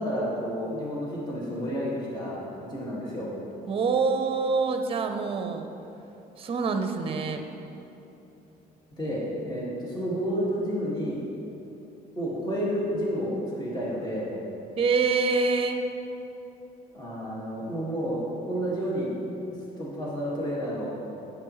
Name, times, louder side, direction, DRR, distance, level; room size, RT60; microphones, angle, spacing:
voice 1, 0.0-3.3 9.0-11.2 12.2-14.3 16.9-19.1 19.8-20.9, equal, 25° left, -6 dB, 1.9 m, -30 dB
voice 2, 3.7-5.7 6.4-7.4 14.8-15.9, right 4 dB, 35° right, 6 dB, 0.7 m, -25 dB
9.6 x 7.8 x 3.1 m, 3.0 s
cardioid pair, 110°, 17 cm